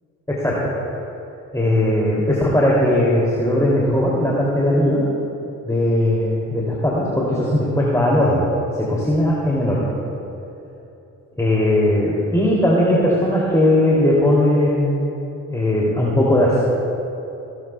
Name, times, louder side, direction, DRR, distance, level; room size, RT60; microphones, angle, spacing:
voice 1, 0.3-0.7 1.5-5.0 5.6-8.5 8.8-10.0 11.4-15.0 15.5-16.6, left 1 dB, 10° left, -6 dB, 2.7 m, -18 dB
17.5 x 13.0 x 2.3 m, 3.0 s
hypercardioid pair, 50°, 37 cm